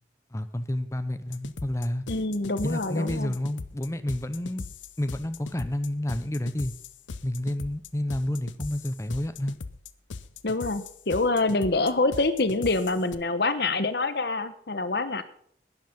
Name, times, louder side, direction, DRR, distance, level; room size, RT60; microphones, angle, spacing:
voice 1, 0.3-2.1 2.6-4.6 5.0-6.7 7.2-9.6, left 1 dB, 15° left, 10 dB, 0.6 m, -30 dB
sound 1, 1.3-13.1, left 4 dB, 85° left, 0.7 m, -40 dB
voice 2, 2.1-3.4 10.4-15.2, left 2 dB, 60° left, 11 dB, 1.1 m, -26 dB
11.5 x 10.5 x 5.3 m, 0.62 s
head